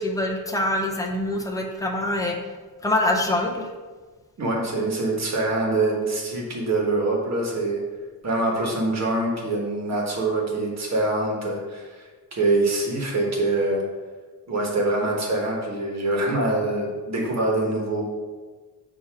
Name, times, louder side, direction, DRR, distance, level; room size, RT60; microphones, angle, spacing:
voice 1, 0.0-2.4 2.8-3.7, left 1 dB, 10° left, 1 dB, 0.6 m, -24 dB
voice 2, 4.4-7.8 8.2-13.8 14.5-18.0, right 2 dB, 45° right, -1 dB, 1.4 m, -24 dB
6.9 x 2.9 x 5.8 m, 1.4 s
wide cardioid pair, 175°, 38 cm